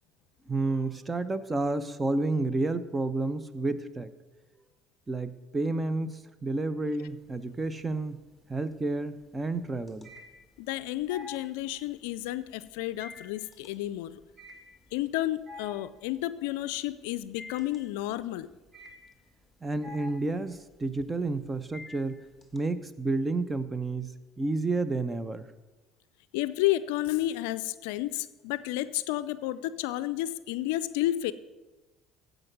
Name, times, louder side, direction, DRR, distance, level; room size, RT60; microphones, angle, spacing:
voice 1, 0.5-4.1 5.1-8.2 8.5-10.1 19.6-22.2 22.5-25.5, right 2 dB, 20° right, 13 dB, 0.8 m, -30 dB
sound 1, 7.1-7.7 8.1-22.6, left 3 dB, 5° right, 1.9 m, -49 dB
voice 2, 10.6-14.2 14.9-18.5 26.3-31.3, left 15 dB, 75° left, 15 dB, 0.4 m, -31 dB
15.5 x 5.1 x 6.1 m, 1.2 s
hypercardioid pair, 65°, 0 cm